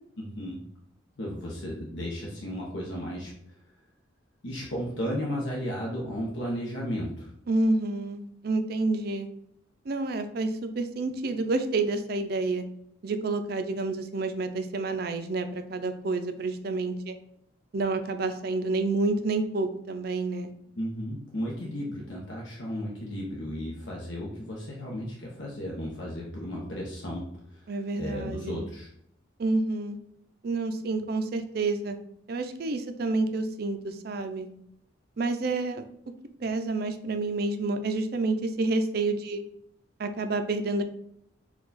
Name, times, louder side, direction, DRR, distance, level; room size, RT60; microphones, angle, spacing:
voice 1, 0.2-0.6 1.2-3.3 4.4-7.3 20.8-28.9, equal, 65° left, -3 dB, 0.8 m, -34 dB
voice 2, 7.5-9.3 9.9-12.6 13.0-17.2 17.7-20.5 27.7-28.6 29.4-30.0 30.4-32.0 32.3-34.5 35.2-35.8 36.4-39.4 40.0-40.8, right 3 dB, 50° right, 8 dB, 0.4 m, -29 dB
4.6 x 2.3 x 3.9 m, 0.72 s
head